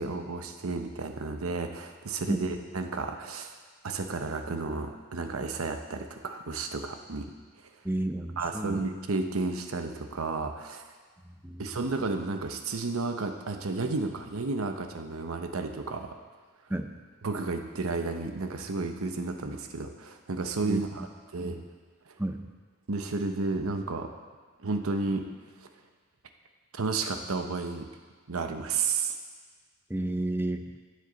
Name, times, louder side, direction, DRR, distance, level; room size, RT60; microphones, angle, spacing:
voice 1, 0.0-3.5 3.8-7.3 8.4-10.8 11.6-16.1 17.2-21.1 21.3-21.6 22.9-24.1 24.6-25.3 26.7-27.9 28.3-29.1, right 3 dB, 85° right, 6 dB, 0.8 m, -32 dB
voice 2, 7.8-8.9 11.4-11.7 16.7-16.9 20.6-20.8 21.4-21.6 22.2-22.4 29.9-30.6, right 1 dB, 10° right, 6 dB, 0.5 m, -31 dB
16.5 x 6.6 x 3.9 m, 1.5 s
head